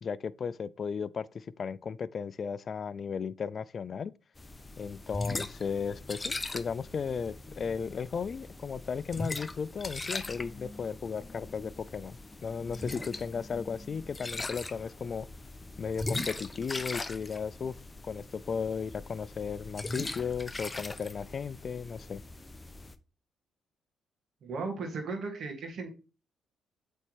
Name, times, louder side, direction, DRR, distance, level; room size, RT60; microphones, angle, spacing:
voice 1, 0.0-4.1 4.8-15.3 15.8-17.8 18.0-22.2, left 6 dB, 50° left, 0.3 m, -35 dB
sound 1, 4.4-22.9, left 2 dB, 25° left, 0.7 m, -40 dB
voice 2, 24.4-25.9, right 4 dB, 60° right, 2.2 m, -36 dB
8.1 x 4.3 x 3.3 m
supercardioid pair, 65°, 0 cm